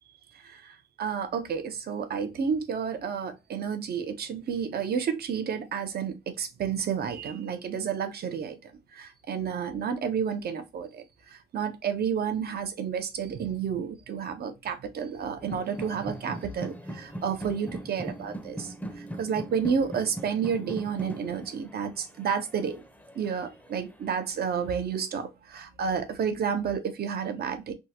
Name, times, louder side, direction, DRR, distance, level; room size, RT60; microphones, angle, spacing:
voice 1, 0.4-11.0 11.5-18.7 19.2-22.8 23.2-27.7, right 7 dB, 55° right, 0.7 m, -31 dB
sound 1, 15.4-24.3, right 1 dB, 5° left, 0.6 m, -41 dB
3.5 x 2.1 x 2.8 m
cardioid pair, 90°, 20 cm